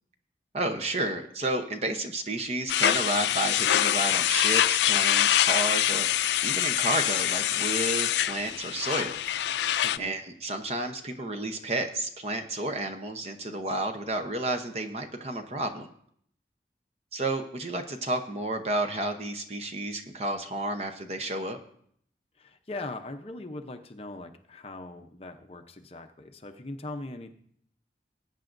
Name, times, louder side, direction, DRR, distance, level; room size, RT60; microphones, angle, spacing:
voice 1, 0.5-9.1 10.0-15.9 17.1-21.6, right 2 dB, 35° right, 6 dB, 0.8 m, -31 dB
sound 1, 2.7-10.0, left 12 dB, 80° left, 0.3 m, -25 dB
voice 2, 9.8-10.1 22.4-27.3, left 2 dB, 35° left, 6 dB, 0.7 m, -40 dB
19.5 x 9.0 x 2.6 m, 0.66 s
head